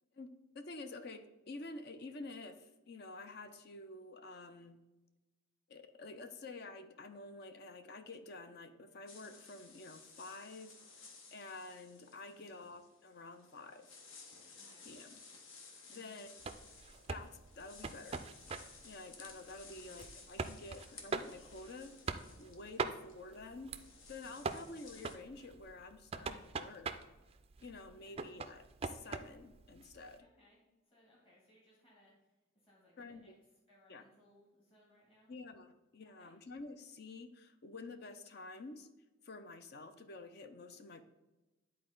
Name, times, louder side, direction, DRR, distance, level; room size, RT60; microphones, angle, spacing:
voice 1, 0.5-4.8 5.7-10.8 11.3-13.9 14.9-15.2 15.9-16.3 17.1-18.2 18.8-22.0 22.4-23.7 24.1-26.9 27.6-30.3 33.0-33.3 33.9-34.0 35.3-38.9 39.2-41.0, left 3 dB, 50° left, 9 dB, 0.6 m, -49 dB
sound 1, 9.1-25.2, left 4 dB, 75° left, 1.1 m, -57 dB
voice 2, 12.3-12.6 14.5-14.9 15.9-16.2 19.6-20.0 20.7-20.9 24.2-24.6 26.4-26.7 27.9-28.2 30.2-33.3 33.7-35.3 36.0-36.4, equal, 25° left, -5 dB, 2.3 m, -68 dB
sound 2, 16.4-30.2, right 4 dB, 30° right, 0.3 m, -44 dB
10.0 x 4.2 x 3.8 m, 1.1 s
head